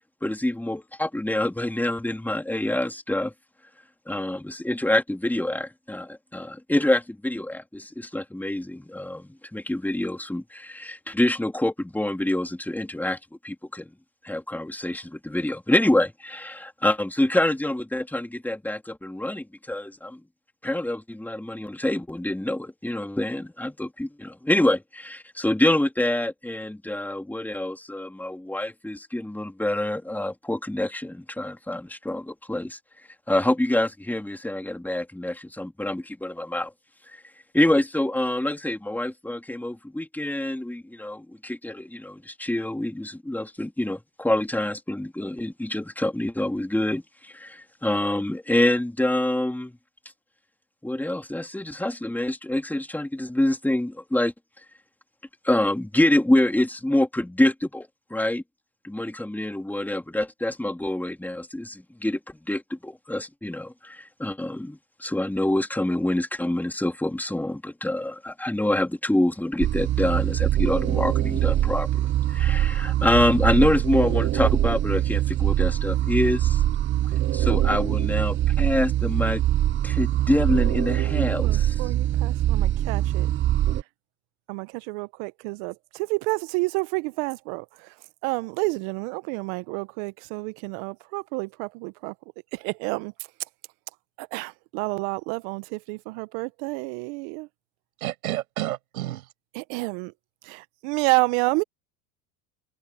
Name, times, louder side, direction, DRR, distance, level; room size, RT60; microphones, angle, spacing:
voice 1, 0.2-3.3 4.1-13.2 13.4-13.9 14.2-20.2 20.6-32.8 33.3-36.7 37.1-37.2 37.5-49.7 50.8-54.3 55.4-58.4 58.8-76.6 77.3-79.4 79.8-81.7, left 1 dB, 5° left, 3.6 m, -26 dB
sound 1, 69.6-83.8, right 12 dB, 30° right, 0.6 m, -23 dB
voice 2, 81.4-83.3 84.5-87.9 88.2-92.1 92.5-93.1 94.2-97.5 99.5-100.1 100.5-101.6, right 26 dB, 65° right, 1.3 m, -29 dB
voice 3, 98.0-99.3, right 15 dB, 85° right, 7.7 m, -30 dB
hypercardioid pair, 95°, 42 cm